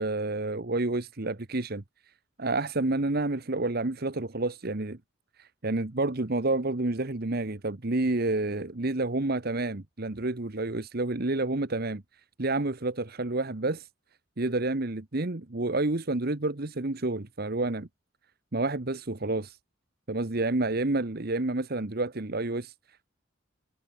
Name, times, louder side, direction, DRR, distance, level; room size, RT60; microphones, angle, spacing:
voice 1, 0.0-1.8 2.4-5.0 5.4-12.0 12.4-13.9 14.4-17.9 18.5-19.6 20.1-22.7, right 2 dB, 50° right, 1.2 m, -29 dB
head